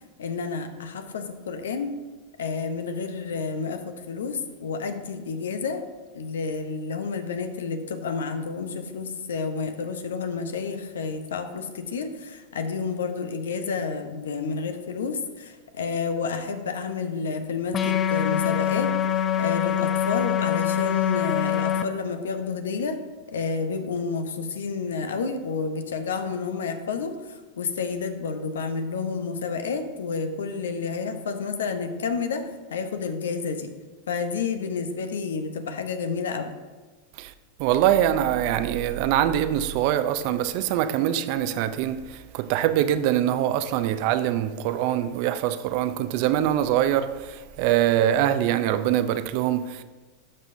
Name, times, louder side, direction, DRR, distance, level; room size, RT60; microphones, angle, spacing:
voice 1, 0.2-1.9 2.4-5.8 6.1-18.9 19.4-23.0 23.3-32.4 32.7-33.7 34.1-36.5, left 5 dB, 80° left, 0.7 m, -30 dB
sound 1, 17.7-21.8, left 10 dB, 30° left, 0.5 m, -24 dB
voice 2, 37.6-49.8, right 11 dB, 55° right, 0.5 m, -23 dB
12.0 x 5.5 x 2.6 m
hypercardioid pair, 100°, 0 cm